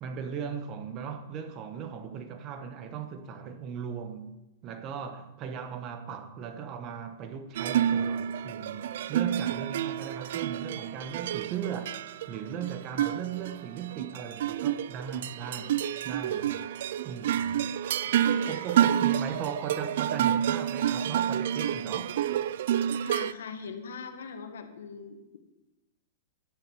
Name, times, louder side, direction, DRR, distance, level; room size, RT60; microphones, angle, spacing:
voice 1, 0.0-4.3 4.6-11.9 12.3-15.8 16.0-16.6 17.0-17.6 18.5-22.2, right 7 dB, 30° right, 1.2 m, -38 dB
sound 1, 7.6-23.3, right 10 dB, 65° right, 0.4 m, -29 dB
voice 2, 15.5-15.9 18.2-19.0 22.9-25.4, left 5 dB, 80° left, 1.8 m, -42 dB
11.5 x 11.5 x 4.9 m
hypercardioid pair, 145°, 0 cm